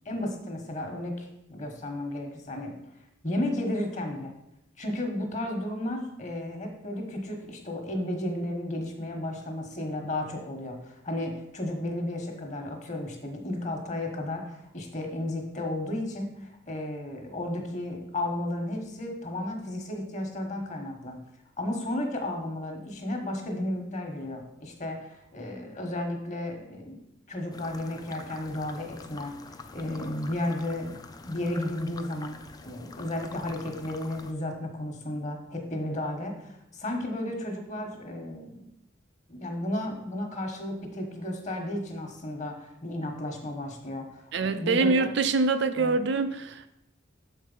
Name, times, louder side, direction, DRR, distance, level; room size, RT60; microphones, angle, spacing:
voice 1, 0.0-2.8 3.2-4.3 4.8-21.2 21.6-29.3 29.7-38.6 39.3-45.1 45.8-46.0, left 1 dB, 40° left, 3 dB, 1.3 m, -33 dB
sound 1, 27.5-34.3, left 3 dB, 20° left, 0.4 m, -46 dB
voice 2, 44.3-46.7, right 3 dB, 60° right, 9 dB, 0.5 m, -25 dB
6.7 x 4.6 x 5.5 m, 0.83 s
head